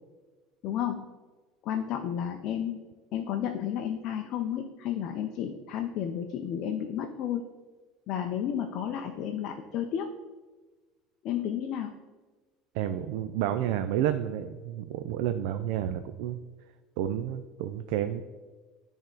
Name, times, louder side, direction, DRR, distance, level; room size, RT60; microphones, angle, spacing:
voice 1, 0.6-1.1 1.6-2.8 3.1-7.4 8.1-10.2 11.2-11.9, left 9 dB, 50° left, 4 dB, 0.4 m, -32 dB
voice 2, 12.7-16.4 17.0-18.2, right 11 dB, 75° right, 10 dB, 0.3 m, -30 dB
9.7 x 3.5 x 3.8 m, 1.3 s
cardioid pair, 140°, 0 cm